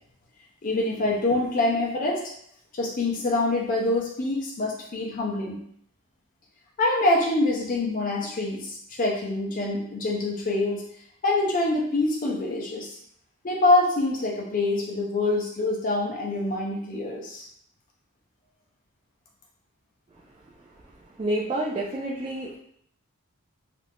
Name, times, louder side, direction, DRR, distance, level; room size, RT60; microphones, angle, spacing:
voice 1, 0.6-2.2 2.8-5.6 6.8-10.9 11.2-13.0 13.4-17.5, left 2 dB, 40° left, -2 dB, 0.5 m, -25 dB
voice 2, 21.2-22.6, right 1 dB, 25° right, -5 dB, 0.3 m, -28 dB
2.4 x 2.3 x 3.3 m, 0.68 s
head